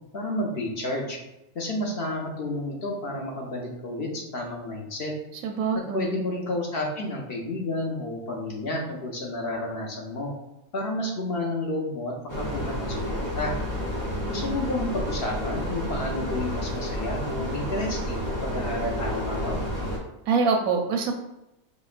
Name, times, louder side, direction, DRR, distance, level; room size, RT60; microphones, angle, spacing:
voice 1, 0.1-1.2 1.5-5.1 5.9-10.3 10.7-13.5 14.3-19.6, left 1 dB, 55° left, -1 dB, 0.7 m, -31 dB
voice 2, 5.4-6.2 14.2-14.5 20.3-21.1, right 4 dB, 85° right, 3 dB, 1.1 m, -25 dB
sound 1, 12.3-20.0, equal, 15° left, 0.7 m, -30 dB
5.0 x 2.0 x 2.4 m, 0.90 s
omnidirectional pair, 1.5 m